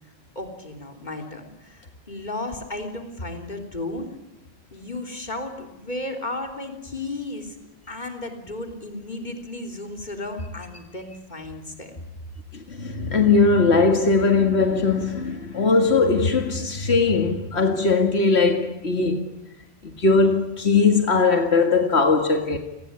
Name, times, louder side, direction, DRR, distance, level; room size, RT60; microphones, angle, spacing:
voice 1, 0.4-4.1 4.7-7.6 7.9-12.0, left 2 dB, 45° left, 3.8 m, -34 dB
voice 2, 12.5-19.3 19.8-22.6, left 4 dB, 85° left, 2.4 m, -20 dB
29.0 x 19.5 x 9.7 m
omnidirectional pair, 1.1 m